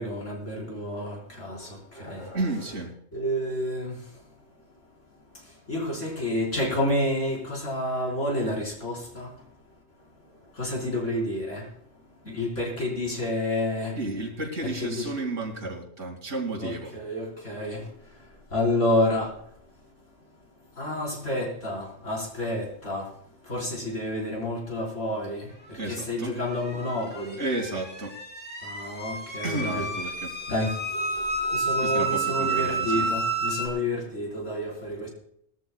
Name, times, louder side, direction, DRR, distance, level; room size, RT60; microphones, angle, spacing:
voice 1, 0.0-1.7 2.0-2.4 3.1-3.9 5.7-9.3 10.6-11.6 12.3-13.9 14.6-15.1 16.6-17.8 18.5-19.3 20.8-23.0 23.5-25.5 25.9-27.4 28.6-29.9 30.5-30.7 31.4-35.1, left 1 dB, 90° left, -4 dB, 5.3 m, -29 dB
voice 2, 2.3-2.9 13.9-16.9 25.8-26.4 27.4-28.1 29.4-30.3 31.7-33.1, right 2 dB, 85° right, 0 dB, 3.2 m, -32 dB
sound 1, 26.1-33.7, right 3 dB, 10° left, 2.3 m, -30 dB
21.0 x 13.5 x 2.4 m, 0.71 s
omnidirectional pair, 1.2 m